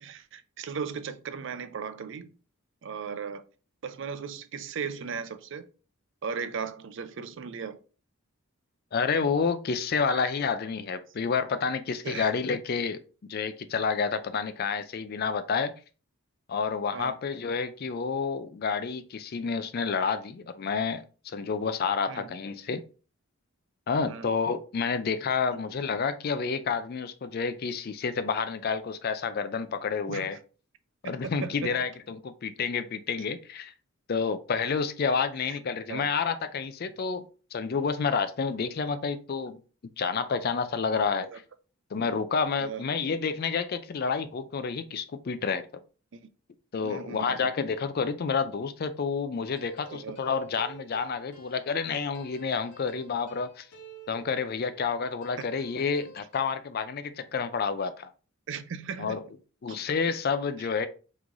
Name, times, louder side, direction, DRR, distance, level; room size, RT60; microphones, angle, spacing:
voice 1, 0.0-2.3 2.8-3.4 3.8-5.7 6.2-7.8 10.1-10.3 12.0-12.3 16.9-17.1 22.1-22.3 24.1-24.3 30.1-30.3 31.0-31.8 35.4-35.6 35.9-36.1 41.2-41.4 42.6-42.9 46.1-46.2 46.8-47.4 49.9-50.2 55.4-55.5 58.5-59.2 59.7-59.8 60.6-60.7, right 6 dB, 55° right, 0.4 m, -37 dB
voice 2, 8.9-13.0 13.3-15.7 16.5-22.8 23.9-30.4 31.0-33.7 34.1-39.6 40.0-41.3 41.9-45.6 46.7-53.7 54.1-58.1 59.0-59.2 59.6-60.9, left 5 dB, 45° left, 0.4 m, -29 dB
sound 1, 49.4-54.9 55.2-56.4, right 2 dB, 90° left, 1.0 m, -51 dB
3.7 x 3.1 x 3.8 m
head